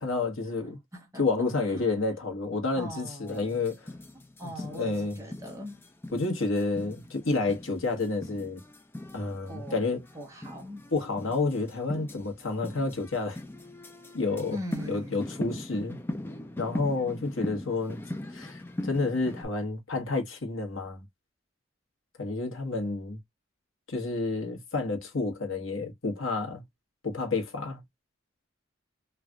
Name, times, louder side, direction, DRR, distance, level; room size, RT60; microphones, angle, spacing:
voice 1, 0.0-0.8 1.2-3.9 4.7-5.2 6.1-8.6 9.1-10.0 10.9-13.4 14.1-14.6 14.9-16.0 16.6-18.0 18.3-21.0 22.2-23.2 23.9-26.6 27.0-27.8, left 3 dB, 75° left, 1.3 m, -30 dB
voice 2, 0.9-1.8 2.8-3.6 4.4-5.8 9.5-9.8 10.1-10.9 14.5-15.4, equal, 15° right, 1.0 m, -41 dB
sound 1, 3.3-19.5, left 1 dB, 10° left, 0.4 m, -40 dB
3.2 x 2.4 x 2.3 m
head